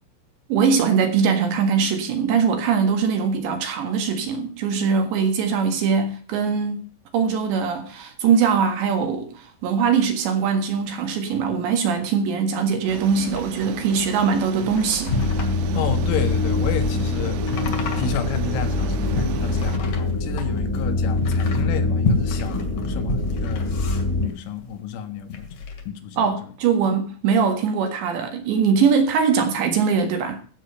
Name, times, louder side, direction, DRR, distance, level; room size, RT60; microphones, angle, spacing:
voice 1, 0.5-6.9 7.1-15.2 26.2-30.4, right 6 dB, 65° right, 3.6 m, -21 dB
sound 1, 12.9-19.8, right 11 dB, 85° right, 2.4 m, -35 dB
sound 2, 13.3-24.8 25.2-25.9, left 3 dB, 50° left, 2.8 m, -32 dB
sound 3, 15.1-24.3, left 3 dB, 20° left, 2.4 m, -24 dB
voice 2, 15.7-17.4 17.8-25.5 25.9-26.5, left 6 dB, 75° left, 3.7 m, -31 dB
16.0 x 7.5 x 5.6 m
omnidirectional pair, 5.9 m